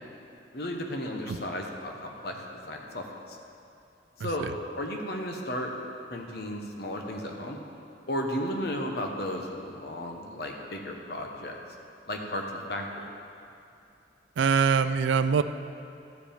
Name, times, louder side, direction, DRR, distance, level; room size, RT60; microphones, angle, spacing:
voice 1, 0.5-3.4 4.2-4.5 4.8-5.7 6.1-7.6 8.1-11.6 12.1-13.1, left 1 dB, 60° left, 2 dB, 1.0 m, -34 dB
voice 2, 4.2-4.5 14.4-15.4, right 6 dB, 85° right, 11 dB, 0.4 m, -24 dB
13.5 x 5.0 x 5.1 m, 2.7 s
head